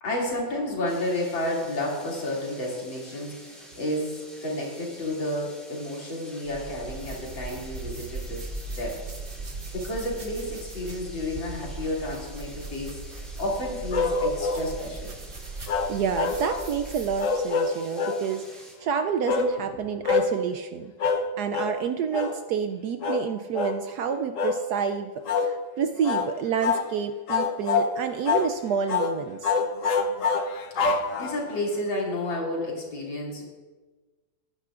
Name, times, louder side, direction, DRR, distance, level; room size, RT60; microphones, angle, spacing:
voice 1, 0.0-9.0 9.7-15.1 30.8-33.5, left 1 dB, 80° left, -4 dB, 3.4 m, -31 dB
sound 1, 0.8-18.7, equal, ahead, 3.2 m, -48 dB
sound 2, 6.5-17.4, right 3 dB, 35° right, 1.3 m, -39 dB
sound 3, 13.9-14.7 15.7-16.7 17.2-18.2 19.3-19.5 20.0-20.3 21.0-21.3 21.5-21.8 22.1-22.4 23.0-23.2 23.5-23.8 24.3-24.6 25.2-25.5 26.0-26.3 26.6-26.9 27.3-27.9 28.2-28.5 28.9-29.1 29.4-31.6, left 5 dB, 55° left, 1.0 m, -25 dB
voice 2, 15.9-20.9 21.4-29.5, right 7 dB, 75° right, 8 dB, 0.9 m, -29 dB
19.0 x 10.5 x 2.5 m, 1.3 s
omnidirectional pair, 2.1 m